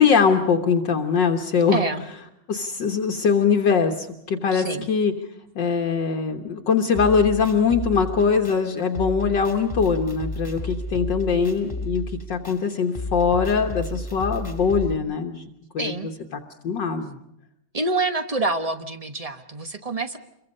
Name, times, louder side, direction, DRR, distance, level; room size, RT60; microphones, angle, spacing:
voice 1, 0.0-1.8 2.5-5.1 5.6-17.2, left 6 dB, 60° left, 4 dB, 1.8 m, -22 dB
voice 2, 1.7-2.0 4.5-4.9 15.8-16.1 17.7-20.2, right 3 dB, 25° right, 9 dB, 1.0 m, -27 dB
sound 1, 7.0-14.9, equal, 15° left, 2.8 m, -33 dB
27.5 x 23.0 x 5.4 m, 0.81 s
omnidirectional pair, 2.2 m